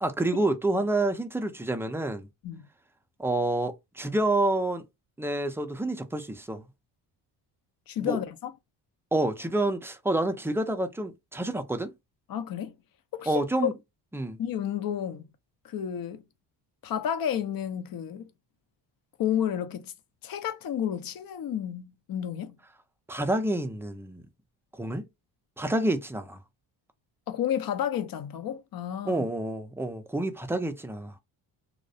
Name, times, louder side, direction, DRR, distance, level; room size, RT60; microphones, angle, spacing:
voice 1, 0.0-2.3 3.2-4.8 5.2-6.6 8.0-8.2 9.1-11.9 13.3-13.7 14.1-14.4 23.1-24.2 24.7-25.0 25.6-26.4 29.1-31.1, right 2 dB, 5° right, 0.4 m, -28 dB
voice 2, 7.9-8.5 12.3-12.7 13.1-13.7 14.4-15.2 15.6-16.2 16.8-18.3 19.2-19.9 20.2-22.5 27.3-29.3, left 9 dB, 50° left, 0.6 m, -31 dB
2.2 x 2.1 x 2.7 m
supercardioid pair, 70°, 46 cm